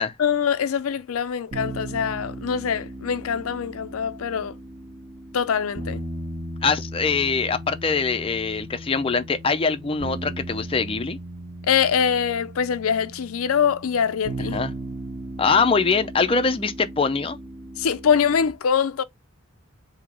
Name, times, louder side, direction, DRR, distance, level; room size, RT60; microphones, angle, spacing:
voice 1, 0.2-4.5 5.3-6.0 11.7-14.6 17.8-19.0, left 7 dB, 90° left, 0.5 m, -23 dB
sound 1, 1.5-18.5, right 1 dB, 30° right, 1.6 m, -37 dB
voice 2, 6.6-11.2 14.5-14.7 15.4-17.4, left 5 dB, 25° left, 0.5 m, -23 dB
3.7 x 2.8 x 4.7 m
head